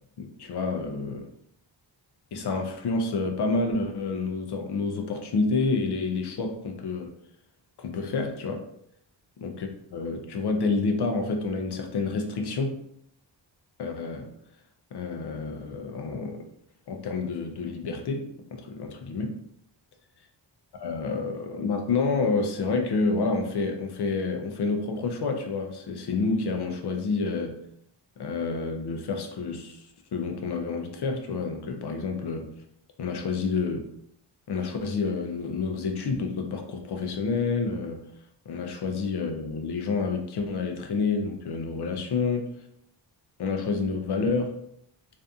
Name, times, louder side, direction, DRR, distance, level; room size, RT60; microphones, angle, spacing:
voice 1, 0.2-1.3 2.3-7.1 7.8-8.6 9.4-12.8 13.8-14.3 14.9-16.4 16.9-19.3 20.8-27.6 28.2-32.5 33.0-33.9 34.5-38.0 38.5-42.5 43.4-44.6, left 4 dB, 60° left, 4 dB, 0.5 m, -29 dB
2.6 x 2.5 x 2.3 m, 0.73 s
wide cardioid pair, 175°, 46 cm